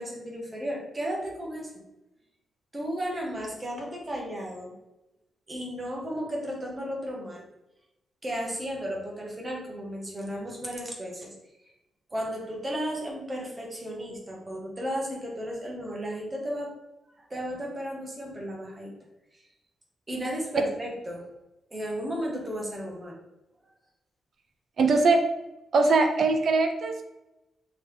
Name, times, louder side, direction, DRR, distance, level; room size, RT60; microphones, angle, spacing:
voice 1, 0.0-1.7 2.7-4.7 5.5-7.4 8.2-11.3 12.1-16.7 17.3-18.9 20.1-21.2 21.7-23.2, equal, 20° right, -1 dB, 0.8 m, -34 dB
voice 2, 24.8-25.2 25.7-27.0, right 3 dB, 50° right, 5 dB, 0.4 m, -21 dB
3.3 x 2.8 x 3.2 m, 0.95 s
wide cardioid pair, 160°, 0 cm